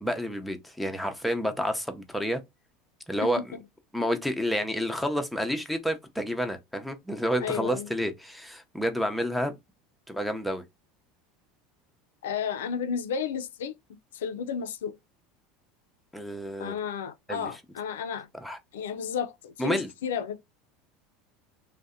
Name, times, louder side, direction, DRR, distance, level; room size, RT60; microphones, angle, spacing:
voice 1, 0.0-2.4 3.1-3.4 3.9-9.5 10.1-10.6 16.1-16.8 17.3-17.5 18.4-18.6 19.6-19.9, equal, ahead, 0.6 m, -29 dB
voice 2, 7.4-7.9 12.2-13.8 14.1-15.0 16.6-18.3 18.7-20.5, left 7 dB, 90° left, 0.3 m, -32 dB
2.6 x 2.1 x 2.3 m
supercardioid pair, 105°, 0 cm